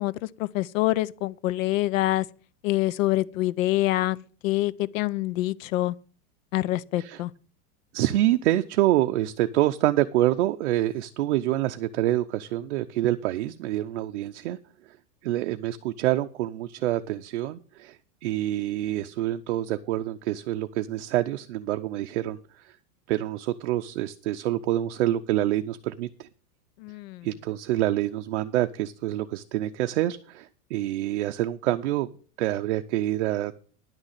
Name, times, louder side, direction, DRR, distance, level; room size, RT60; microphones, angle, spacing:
voice 1, 0.0-2.3 2.6-6.0 6.5-7.3 26.8-27.3, left 16 dB, 60° left, 0.6 m, -26 dB
voice 2, 7.9-14.6 15.2-22.7 23.1-26.3 27.2-32.1 32.4-33.6, right 14 dB, 50° right, 0.6 m, -26 dB
10.5 x 6.5 x 7.3 m
supercardioid pair, 180°, 46 cm